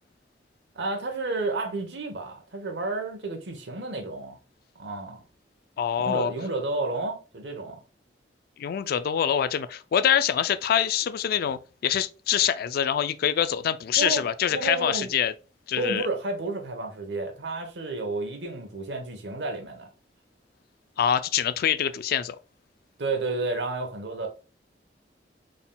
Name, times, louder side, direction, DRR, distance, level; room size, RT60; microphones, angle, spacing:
voice 1, 0.7-4.4 4.7-5.2 6.0-7.8 14.0-14.2 14.5-15.1 15.8-19.9 23.0-24.3, right 3 dB, 75° right, 1.0 m, -31 dB
voice 2, 5.8-6.3 8.6-15.3 15.7-16.1 21.0-22.4, left 9 dB, 55° left, 0.3 m, -25 dB
3.9 x 3.7 x 2.2 m
head